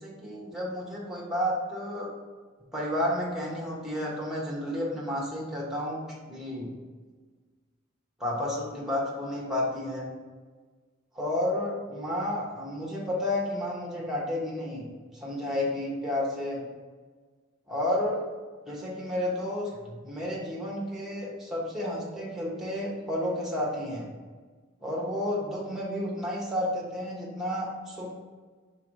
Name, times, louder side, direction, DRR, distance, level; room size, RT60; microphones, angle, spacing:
voice 1, 0.0-2.1 2.7-6.7 8.2-10.1 11.1-16.7 17.7-18.2 18.7-24.1 24.8-28.1, left 1 dB, ahead, -4 dB, 1.3 m, -31 dB
4.7 x 4.4 x 4.8 m, 1.4 s
head